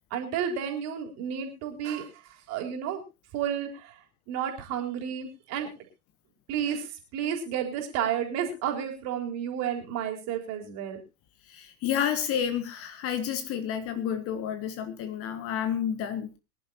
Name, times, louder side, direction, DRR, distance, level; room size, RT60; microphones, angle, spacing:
voice 1, 0.1-2.1 2.5-3.0 3.3-3.9 4.3-5.7 6.5-11.0, right 8 dB, 35° right, 3 dB, 3.9 m, -31 dB
voice 2, 11.5-16.3, left 9 dB, 30° left, 9 dB, 1.6 m, -30 dB
23.0 x 11.5 x 2.9 m, 0.28 s
figure-of-eight pair, 90°, 43 cm